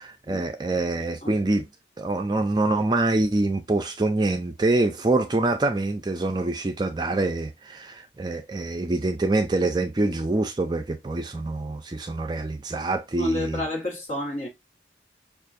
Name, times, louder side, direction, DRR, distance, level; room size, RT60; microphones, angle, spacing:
voice 1, 0.0-1.6 2.0-13.6, right 2 dB, 25° right, 0.4 m, -25 dB
voice 2, 13.2-14.5, left 1 dB, 40° left, 1.6 m, -29 dB
5.6 x 2.4 x 2.5 m
head